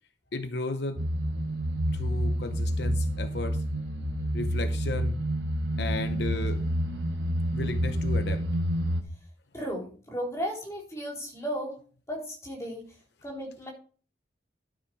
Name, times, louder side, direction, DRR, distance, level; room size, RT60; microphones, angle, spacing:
voice 1, 0.3-1.0 1.9-3.6 4.3-5.2 5.8-6.6 7.5-8.4, left 2 dB, 70° left, 8 dB, 0.9 m, -34 dB
Spooky humming, 1.0-9.0, equal, 85° right, 1.4 m, -28 dB
voice 2, 9.5-11.8 12.1-12.9 13.2-13.7, equal, 15° left, -2 dB, 4.0 m, -35 dB
12.5 x 6.6 x 4.7 m, 0.40 s
head